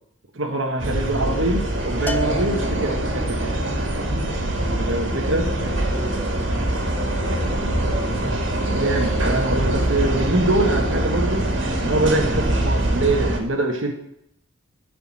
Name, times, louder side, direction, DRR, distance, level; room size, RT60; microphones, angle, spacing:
voice 1, 0.3-3.6 4.8-5.5 8.7-11.5 11.8-13.9, right 2 dB, 85° right, 2 dB, 1.4 m, -24 dB
sound 1, 0.8-13.4, right 1 dB, 70° right, 2.4 m, -23 dB
Bell, 2.1-3.4, left 2 dB, 10° left, 0.6 m, -32 dB
voice 2, 5.3-8.2, equal, 20° right, -5 dB, 5.7 m, -37 dB
13.0 x 5.2 x 7.5 m, 0.78 s
head